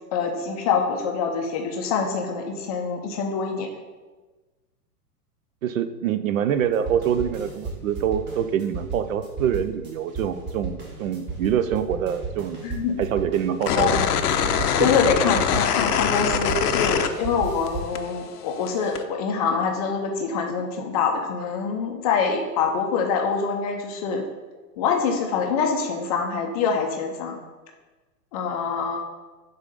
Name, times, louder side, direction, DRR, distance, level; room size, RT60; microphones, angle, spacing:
voice 1, 0.1-3.7 12.6-12.9 13.7-14.0 14.8-24.2 24.8-27.4 28.3-29.0, left 5 dB, 25° left, 2 dB, 0.4 m, -25 dB
voice 2, 5.6-12.6 13.0-14.1 14.8-14.9, right 9 dB, 60° right, 11 dB, 0.5 m, -25 dB
sound 1, 6.5-16.7 17.1-18.0, right 4 dB, 25° right, 1.4 m, -34 dB
sound 2, 13.6-17.7 18.0-19.0, left 8 dB, 70° left, 0.6 m, -23 dB
5.3 x 3.7 x 5.2 m, 1.3 s
figure-of-eight pair, 110°, 47 cm